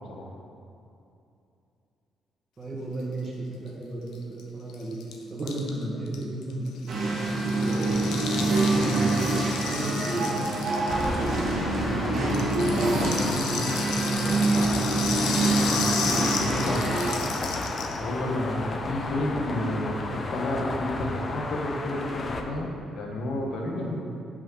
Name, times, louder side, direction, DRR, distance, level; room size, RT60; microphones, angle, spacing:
voice 1, 2.6-3.3 3.6-5.0 5.3-9.3 9.7-10.4 11.2-15.2 15.8-17.1 23.6-23.9, right 1 dB, 30° right, -4 dB, 1.8 m, -35 dB
Rattle (instrument), 4.1-4.2 4.4-4.5 4.7-11.8 12.1-18.0, left 6 dB, 90° left, 0.7 m, -33 dB
sound 1, 6.9-17.1, right 2 dB, 65° right, 1.6 m, -26 dB
sound 2, 10.9-22.4, left 2 dB, 40° left, 0.7 m, -33 dB
voice 2, 16.3-16.9 17.9-24.0, left 1 dB, 70° left, -1 dB, 1.3 m, -31 dB
5.7 x 5.1 x 6.4 m, 2.7 s
cardioid pair, 90°, 0 cm